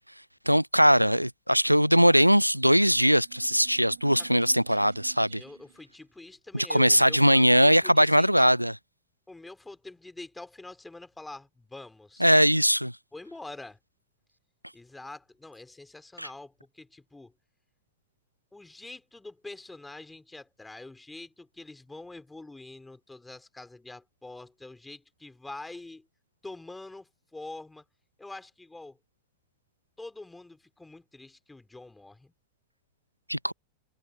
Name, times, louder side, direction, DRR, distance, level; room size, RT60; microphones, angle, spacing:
voice 1, 0.5-5.4 6.5-8.7 12.2-12.9 16.2-16.3 33.3-33.5, equal, 90° right, 0.4 m, -21 dB
sound 1, 3.0-5.8, right 9 dB, 65° right, 4.2 m, -50 dB
voice 2, 5.3-8.6 9.3-12.3 13.1-13.8 14.7-17.3 18.5-26.1 26.4-27.8 28.2-29.0 30.0-32.3, left 2 dB, 5° left, 4.0 m, -45 dB
figure-of-eight pair, 90°, 0 cm